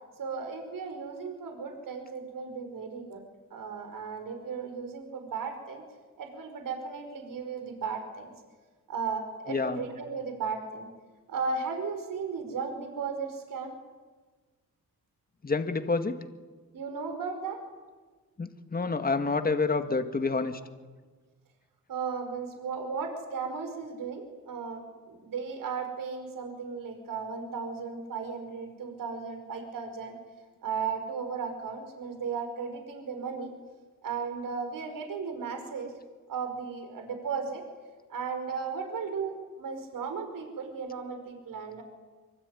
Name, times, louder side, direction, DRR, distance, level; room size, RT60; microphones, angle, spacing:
voice 1, 0.2-3.2 3.5-5.8 6.2-8.3 8.9-10.9 11.3-13.8 16.7-17.6 21.9-30.2 30.6-33.5 34.0-35.9 36.3-37.6 38.1-41.8, right 5 dB, 70° right, 6 dB, 5.3 m, -35 dB
voice 2, 15.4-16.2 18.4-20.6, left 4 dB, 25° left, 8 dB, 2.0 m, -28 dB
25.0 x 24.5 x 9.8 m, 1.4 s
cardioid pair, 100°, 34 cm